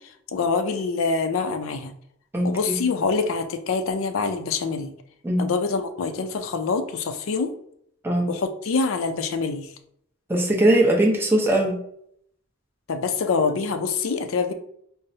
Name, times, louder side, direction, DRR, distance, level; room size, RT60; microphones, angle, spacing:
voice 1, 0.3-1.9 2.4-4.9 5.4-7.5 8.3-9.7 12.9-14.5, left 4 dB, 70° left, 8 dB, 0.4 m, -25 dB
voice 2, 2.3-2.7 5.2-5.5 8.0-8.3 10.3-11.8, right 1 dB, 10° right, -1 dB, 0.6 m, -20 dB
5.4 x 2.0 x 2.7 m, 0.70 s
head